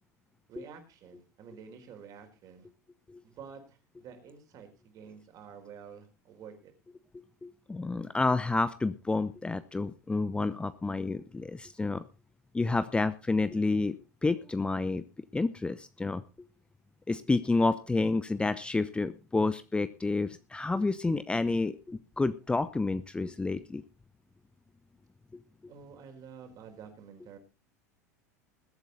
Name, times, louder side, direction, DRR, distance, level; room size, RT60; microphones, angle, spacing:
voice 1, 0.5-2.7 3.2-6.7 25.7-27.4, right 7 dB, 45° right, 5 dB, 4.5 m, -49 dB
voice 2, 7.4-12.0 12.5-14.0 14.2-15.0 15.3-16.2 17.1-23.8, left 3 dB, 10° left, 14 dB, 0.8 m, -29 dB
21.0 x 8.3 x 4.2 m, 0.31 s
hypercardioid pair, 85°, 9 cm